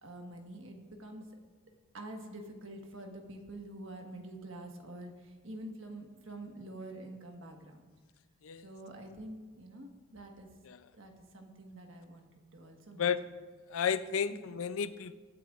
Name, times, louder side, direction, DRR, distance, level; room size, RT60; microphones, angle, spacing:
voice 1, 0.0-1.3 1.9-8.0 8.6-10.5 10.9-13.1 14.3-14.4, right 1 dB, 65° right, 3 dB, 1.5 m, -47 dB
voice 2, 13.7-15.1, left 7 dB, 70° left, 13 dB, 0.5 m, -32 dB
24.5 x 9.2 x 2.5 m, 1.5 s
head